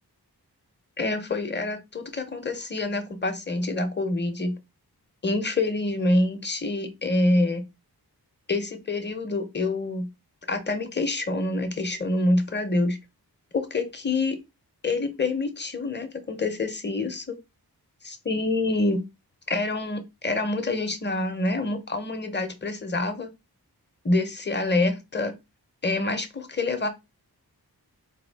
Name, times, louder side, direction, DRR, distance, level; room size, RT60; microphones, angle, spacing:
voice 1, 1.0-4.6 5.2-7.7 8.5-10.1 10.5-13.0 13.5-14.4 14.8-17.4 18.0-19.0 19.5-23.3 24.0-25.3 25.8-26.9, left 2 dB, 30° left, 6 dB, 0.7 m, -26 dB
4.2 x 2.3 x 3.4 m, 0.24 s
wide cardioid pair, 65°, 38 cm